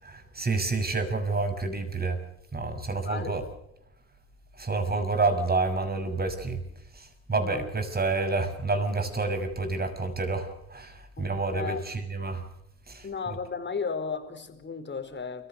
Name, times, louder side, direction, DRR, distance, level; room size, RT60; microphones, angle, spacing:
voice 1, 0.0-2.2 2.5-3.4 4.6-6.6 6.9-12.4 12.9-13.1, right 3 dB, 25° right, 6.5 m, -29 dB
voice 2, 2.9-3.4 7.4-7.7 11.2-11.8 13.0-15.5, left 5 dB, 30° left, 4.7 m, -35 dB
29.0 x 15.5 x 6.9 m
hypercardioid pair, 60°, 35 cm